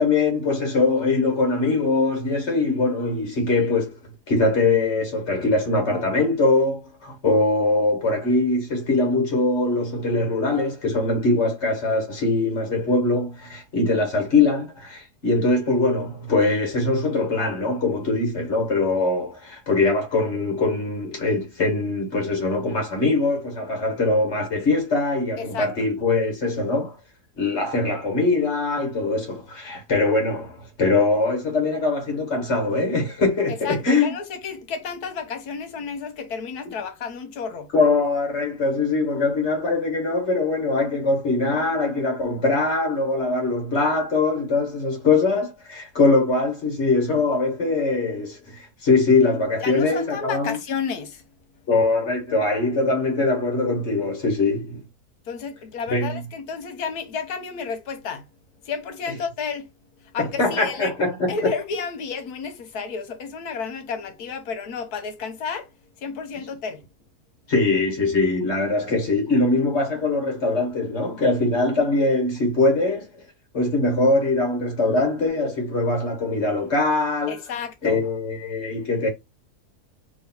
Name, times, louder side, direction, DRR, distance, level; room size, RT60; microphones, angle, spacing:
voice 1, 0.0-4.0 4.3-26.9 27.4-34.1 37.7-50.6 51.7-54.8 55.9-56.2 60.2-61.3 67.5-73.2 73.5-77.4 77.8-79.1, left 3 dB, 50° left, 1.4 m, -22 dB
voice 2, 25.4-25.7 33.5-37.7 49.6-51.2 55.3-58.2 58.6-59.7 60.1-60.9 61.3-65.7 66.0-66.8 77.3-78.0, left 5 dB, 75° left, 1.3 m, -31 dB
3.1 x 2.8 x 4.2 m
omnidirectional pair, 1.7 m